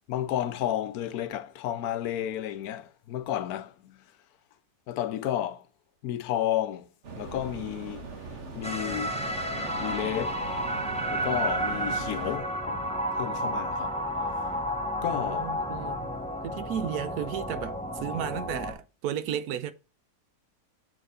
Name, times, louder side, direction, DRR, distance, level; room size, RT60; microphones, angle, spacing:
voice 1, 0.1-4.0 4.9-5.6 6.0-6.9 7.2-8.0 8.6-9.2 9.8-10.4 11.1-12.8 13.1-14.0 15.0-15.5, left 12 dB, 80° left, 1.1 m, -31 dB
sound 1, 7.0-12.4, right 4 dB, 50° right, 1.5 m, -41 dB
sound 2, 8.6-18.7, equal, 5° left, 0.8 m, -31 dB
voice 2, 15.0-16.1 16.4-19.7, right 10 dB, 80° right, 1.2 m, -34 dB
6.6 x 4.6 x 4.9 m
omnidirectional pair, 1.6 m